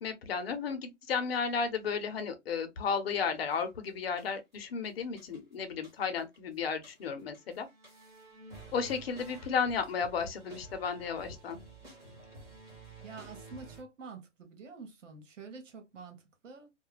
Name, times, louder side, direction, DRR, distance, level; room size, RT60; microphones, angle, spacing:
voice 1, 0.0-7.7 8.7-11.6, left 6 dB, 55° left, 0.7 m, -33 dB
sound 1, 3.5-3.7 4.2-4.7 5.0-6.4 6.7-13.8, right 2 dB, 10° right, 0.7 m, -52 dB
voice 2, 13.0-16.7, right 4 dB, 80° right, 1.1 m, -48 dB
2.3 x 2.2 x 3.1 m
hypercardioid pair, 165°, 37 cm